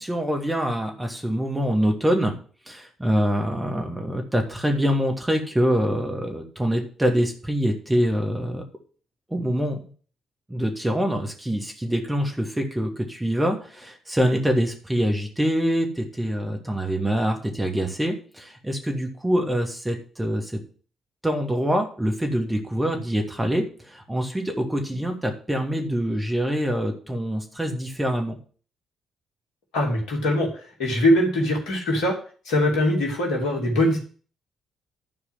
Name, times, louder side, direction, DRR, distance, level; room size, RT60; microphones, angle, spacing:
voice 1, 0.0-2.4 2.7-8.6 9.3-9.9 10.5-20.6 21.2-28.4, equal, 15° right, 3 dB, 2.7 m, -25 dB
voice 2, 29.7-32.1 32.4-34.0, left 1 dB, 65° left, 1 dB, 2.8 m, -22 dB
11.5 x 4.7 x 7.8 m, 0.41 s
figure-of-eight pair, 40°, 0 cm